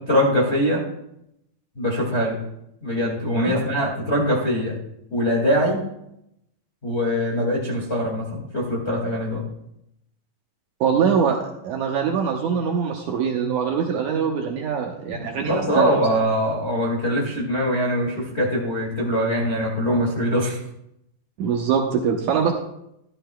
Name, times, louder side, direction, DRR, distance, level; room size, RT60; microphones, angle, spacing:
voice 1, 0.1-0.8 1.7-2.4 2.8-4.8 5.1-5.8 6.8-9.4 15.1-20.6, equal, 30° left, -3 dB, 1.3 m, -22 dB
voice 2, 10.8-11.4 11.6-16.0 21.4-22.5, right 7 dB, 70° right, 1 dB, 2.0 m, -23 dB
13.5 x 12.5 x 2.2 m, 0.81 s
omnidirectional pair, 4.2 m